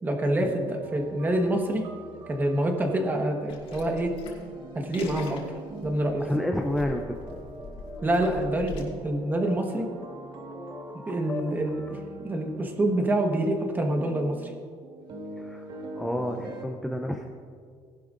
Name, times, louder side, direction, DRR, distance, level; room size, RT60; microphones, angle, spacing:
voice 1, 0.0-1.9 2.3-4.2 4.7-5.4 5.8-6.3 8.0-9.9 11.0-12.0 12.2-14.5, right 1 dB, 20° right, 3 dB, 1.2 m, -26 dB
sound 1, 0.8-16.7, right 2 dB, 50° right, 1.4 m, -44 dB
sound 2, 3.5-8.8, left 3 dB, 70° left, 3.1 m, -43 dB
sound 3, 4.9-12.1, left 3 dB, 15° left, 0.9 m, -44 dB
voice 2, 6.2-7.2 15.4-15.7 16.0-17.3, left 1 dB, ahead, 2 dB, 0.5 m, -29 dB
18.5 x 11.5 x 2.5 m, 2.1 s
cardioid pair, 160°, 10 cm